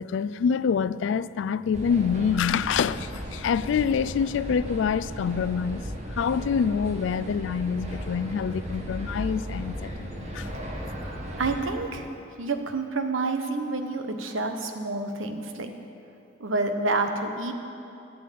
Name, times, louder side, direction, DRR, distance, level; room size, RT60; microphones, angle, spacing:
voice 1, 0.0-5.8 6.2-10.5, left 6 dB, 75° left, 0.3 m, -26 dB
sound 1, 1.7-11.7, equal, 35° right, 1.5 m, -36 dB
voice 2, 11.4-12.1 12.4-15.7 16.4-17.5, right 3 dB, 90° right, 1.1 m, -28 dB
12.0 x 7.9 x 8.4 m
head